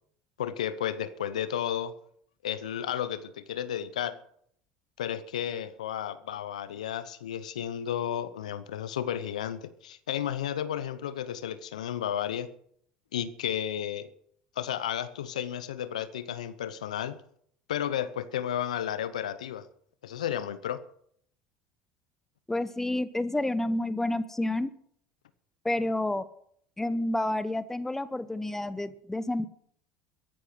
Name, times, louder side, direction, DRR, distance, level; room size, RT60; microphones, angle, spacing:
voice 1, 0.4-2.0 2.4-4.2 5.0-12.5 13.1-14.1 14.6-17.2 17.7-19.7 20.0-20.8, left 10 dB, 85° left, 14 dB, 0.8 m, -33 dB
voice 2, 22.5-24.7 25.6-26.2 26.8-29.5, left 1 dB, 10° left, 15 dB, 0.9 m, -29 dB
14.0 x 11.5 x 6.0 m, 0.66 s
hypercardioid pair, 75°, 4 cm